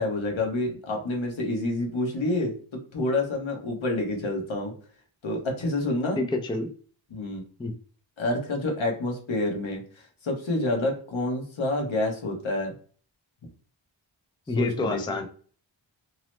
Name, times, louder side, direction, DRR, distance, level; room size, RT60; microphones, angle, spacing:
voice 1, 0.0-2.5 2.9-4.7 5.2-6.2 7.1-7.4 8.2-9.8 10.2-12.7 14.6-15.2, left 2 dB, 75° left, 1 dB, 0.9 m, -28 dB
voice 2, 6.2-6.7 7.6-7.7 14.5-15.3, left 2 dB, 10° left, 5 dB, 0.3 m, -27 dB
2.9 x 2.0 x 3.0 m, 0.43 s
wide cardioid pair, 55°, 48 cm